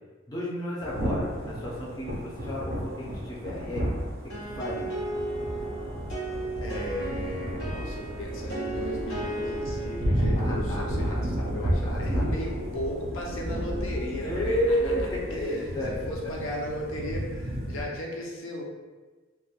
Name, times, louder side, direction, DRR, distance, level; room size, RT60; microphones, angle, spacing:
voice 1, 0.3-3.9 4.2-5.0 10.2-11.2 11.9-12.2 14.2-16.0, equal, 20° left, -6 dB, 0.4 m, -32 dB
Thunder / Rain, 0.8-17.8, equal, 50° right, 0.4 m, -32 dB
sound 1, 4.3-13.9, right 2 dB, 90° left, 0.9 m, -37 dB
voice 2, 6.6-18.6, left 1 dB, 70° left, -2 dB, 0.5 m, -36 dB
2.2 x 2.1 x 2.8 m, 1.3 s
head